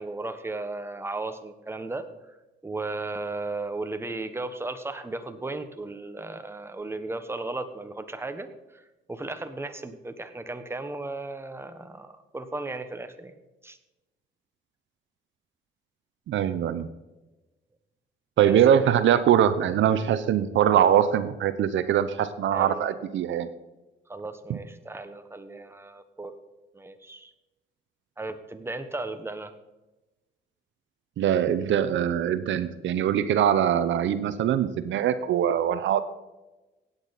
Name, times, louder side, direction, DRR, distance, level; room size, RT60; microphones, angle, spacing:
voice 1, 0.0-2.1 2.6-8.8 9.1-13.4 13.6-13.8 18.4-18.9 22.5-23.0 24.1-26.3 26.7-27.3 28.2-29.5, right 2 dB, 10° right, 8 dB, 1.2 m, -35 dB
voice 2, 16.3-16.9 18.4-23.5 24.5-24.6 31.2-36.0, right 9 dB, 70° right, 12 dB, 0.7 m, -22 dB
16.0 x 9.0 x 4.1 m, 1.1 s
cardioid pair, 90°, 20 cm